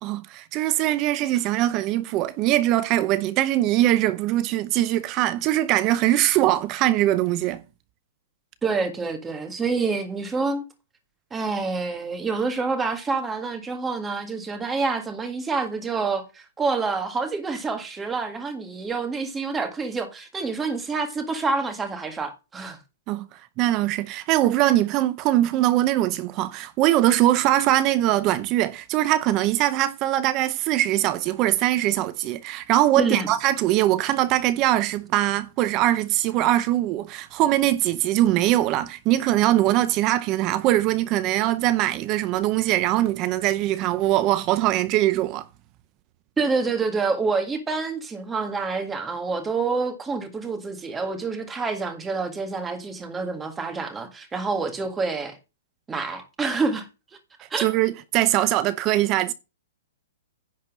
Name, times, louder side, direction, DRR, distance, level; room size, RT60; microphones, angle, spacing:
voice 1, 0.0-7.6 23.1-23.3 23.6-45.5 57.6-59.3, right 14 dB, 30° right, 0.6 m, -22 dB
voice 2, 8.6-10.6 11.3-22.8 33.0-33.3 46.4-55.4 55.9-56.9 57.5-57.7, right 4 dB, 10° right, 1.8 m, -27 dB
10.5 x 4.3 x 7.3 m
hypercardioid pair, 150°, 0 cm